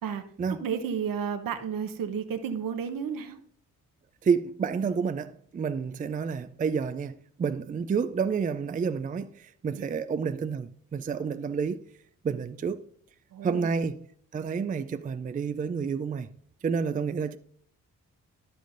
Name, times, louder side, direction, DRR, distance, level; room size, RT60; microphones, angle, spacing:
voice 1, 0.5-3.4 9.7-9.9 13.3-13.8, right 7 dB, 65° right, 1.1 m, -32 dB
voice 2, 4.2-11.8 12.2-12.8 13.4-14.1 14.3-16.3 16.6-17.4, right 6 dB, 25° right, 0.4 m, -29 dB
11.0 x 7.6 x 2.6 m
hypercardioid pair, 45°, 37 cm